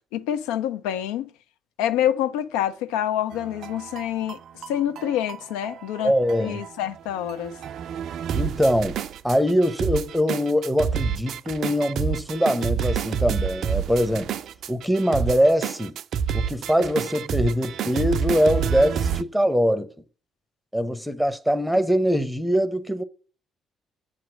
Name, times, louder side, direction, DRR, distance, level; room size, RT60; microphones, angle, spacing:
voice 1, 0.1-1.3 1.8-4.4 4.7-6.1 6.4-7.6, left 11 dB, 75° left, 0.4 m, -26 dB
sound 1, 3.3-19.2, right 7 dB, 65° right, 0.3 m, -29 dB
voice 2, 6.0-6.6 8.3-9.0 9.2-14.3 14.7-15.9 16.3-19.9 20.7-23.0, equal, ahead, 0.7 m, -22 dB
7.4 x 3.0 x 6.1 m
hypercardioid pair, 50°, 0 cm